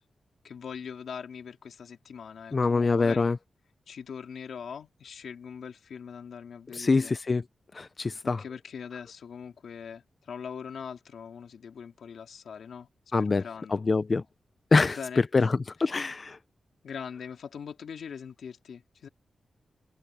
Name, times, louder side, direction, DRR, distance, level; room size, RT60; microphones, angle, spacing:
voice 1, 0.4-3.3 3.9-7.2 8.2-12.9 13.2-13.8 14.8-15.5 15.9-16.0 16.8-19.1, left 7 dB, 80° left, 2.6 m, -42 dB
voice 2, 2.5-3.4 6.7-7.4 7.7-8.4 13.1-13.4 13.7-14.2 14.7-15.0 15.3-16.4, left 3 dB, 30° left, 0.4 m, -25 dB
wide cardioid pair, 175°, 0 cm